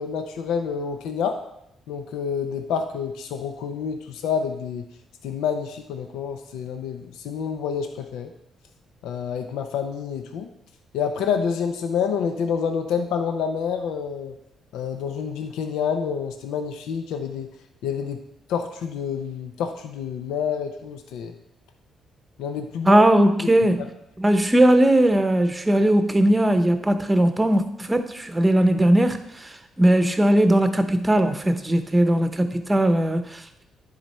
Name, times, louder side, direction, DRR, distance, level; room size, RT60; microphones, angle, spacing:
voice 1, 0.0-1.4 1.9-4.8 5.2-8.3 9.0-10.5 10.9-14.3 14.7-17.5 17.8-18.2 18.5-21.3 22.4-23.1 23.4-23.5, left 7 dB, 90° left, 6 dB, 0.6 m, -28 dB
voice 2, 22.8-23.8 24.2-33.6, right 1 dB, 15° right, 8 dB, 0.8 m, -19 dB
10.5 x 4.0 x 4.3 m, 0.80 s
cardioid pair, 90°, 0 cm